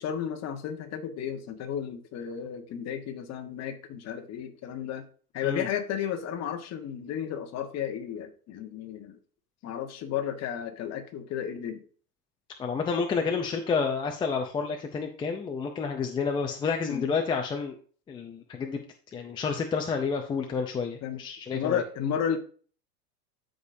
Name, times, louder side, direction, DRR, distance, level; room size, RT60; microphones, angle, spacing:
voice 1, 0.0-5.0 5.3-9.2 9.6-11.8 16.8-17.0 21.0-21.2 21.5-22.4, left 9 dB, 30° left, 5 dB, 1.4 m, -33 dB
voice 2, 12.6-17.8 18.1-18.8 19.1-21.8, left 5 dB, 10° left, 3 dB, 0.4 m, -30 dB
13.0 x 5.1 x 2.7 m, 0.42 s
supercardioid pair, 140°, 48 cm